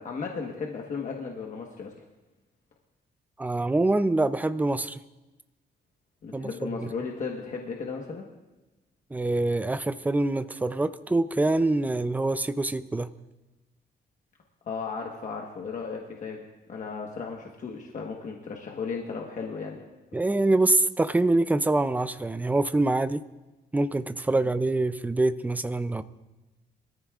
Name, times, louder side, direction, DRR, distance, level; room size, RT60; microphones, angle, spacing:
voice 1, 0.0-1.9 6.2-8.3 14.6-16.4 16.7-19.8 24.4-24.5, left 5 dB, 45° left, 0 dB, 1.3 m, -35 dB
voice 2, 3.4-5.0 6.3-6.9 9.1-13.1 20.1-23.2 23.7-26.0, right 2 dB, 10° right, 13 dB, 0.4 m, -25 dB
24.0 x 14.0 x 2.4 m, 1.1 s
cardioid pair, 145°, 18 cm